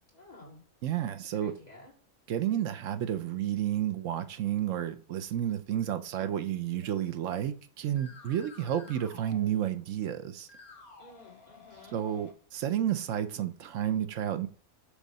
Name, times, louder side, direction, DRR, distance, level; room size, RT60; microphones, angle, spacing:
voice 1, 0.1-0.6 1.3-1.9 11.0-12.0, left 2 dB, 30° left, 2.6 m, -52 dB
voice 2, 0.8-1.5 2.3-10.5 11.9-14.5, right 10 dB, 65° right, 1.0 m, -31 dB
sound 1, 6.8-7.5 7.9-10.0 10.4-12.3, left 3 dB, 75° left, 2.0 m, -53 dB
7.0 x 3.2 x 5.4 m
omnidirectional pair, 1.5 m